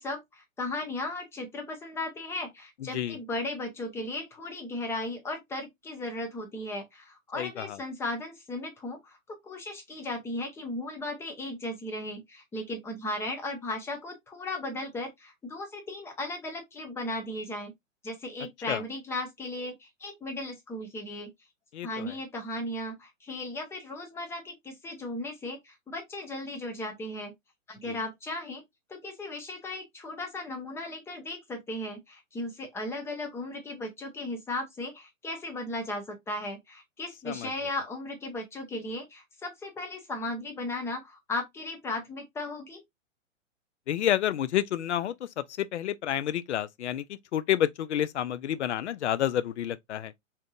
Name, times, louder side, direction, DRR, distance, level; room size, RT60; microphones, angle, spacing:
voice 1, 0.0-17.7 18.0-21.3 21.8-27.3 27.7-28.6 28.9-42.8, left 2 dB, 5° left, 0.6 m, -36 dB
voice 2, 2.8-3.2 7.3-7.8 18.7-18.8 21.7-22.1 27.9-28.0 37.3-37.5 43.9-50.1, left 11 dB, 60° left, 0.5 m, -29 dB
3.5 x 2.8 x 2.3 m
figure-of-eight pair, 110°, 39 cm